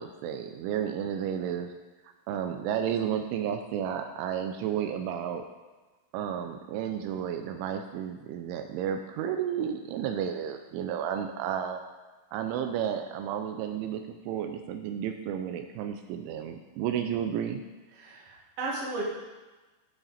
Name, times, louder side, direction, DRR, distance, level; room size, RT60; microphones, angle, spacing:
voice 1, 0.0-1.7 2.3-5.4 6.1-11.8 12.3-17.6, right 9 dB, 85° right, 6 dB, 3.0 m, -32 dB
voice 2, 18.0-19.0, right 2 dB, 45° right, -4 dB, 2.1 m, -35 dB
16.0 x 5.8 x 4.2 m, 1.2 s
omnidirectional pair, 5.6 m